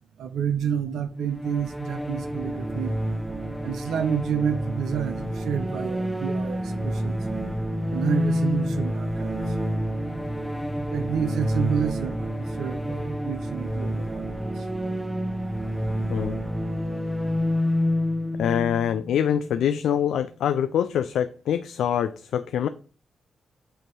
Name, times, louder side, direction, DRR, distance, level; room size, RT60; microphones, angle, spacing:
voice 1, 0.2-2.9 3.6-7.2 7.9-9.4 10.9-14.7, right 7 dB, 85° right, 0.7 m, -29 dB
sound 1, 1.3-19.9, equal, 5° right, 0.8 m, -28 dB
voice 2, 18.4-22.7, left 9 dB, 85° left, 0.3 m, -24 dB
7.8 x 2.8 x 4.7 m
cardioid pair, 60°, 0 cm